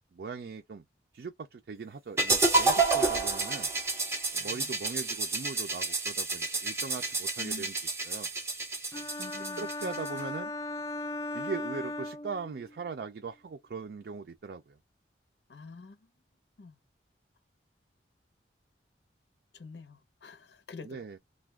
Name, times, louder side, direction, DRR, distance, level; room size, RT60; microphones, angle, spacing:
voice 1, 0.1-0.8 1.1-3.7 4.3-7.7 8.1-8.3 9.5-10.5 11.3-14.8 20.8-21.2, right 4 dB, 60° right, 0.4 m, -40 dB
sound 1, 2.2-10.2, right 3 dB, 15° right, 0.6 m, -29 dB
voice 2, 4.4-4.7 7.4-7.7 9.2-9.9 15.5-16.1 16.6-16.8 19.5-21.0, left 3 dB, 75° left, 0.7 m, -47 dB
sound 2, 8.9-12.8, left 2 dB, 15° left, 0.3 m, -37 dB
2.4 x 2.2 x 3.3 m
head